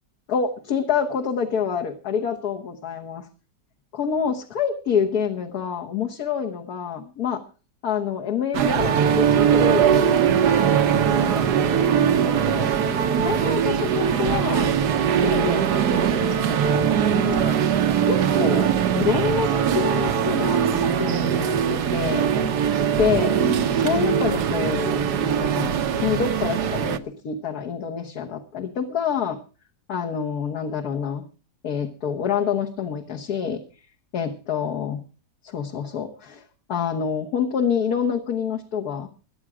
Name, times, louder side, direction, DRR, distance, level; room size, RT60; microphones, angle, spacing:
voice 1, 0.3-3.3 3.9-7.4 7.8-10.3 10.8-12.7 13.2-14.7 15.2-17.6 18.0-22.3 23.0-23.4 23.7-29.4 29.9-31.3 31.6-33.6 34.1-35.0 35.4-36.4 36.7-39.1, left 7 dB, 70° left, 2 dB, 1.8 m, -27 dB
sound 1, 8.5-27.0, right 8 dB, 80° right, 1.6 m, -21 dB
22.5 x 8.8 x 5.0 m, 0.37 s
omnidirectional pair, 1.7 m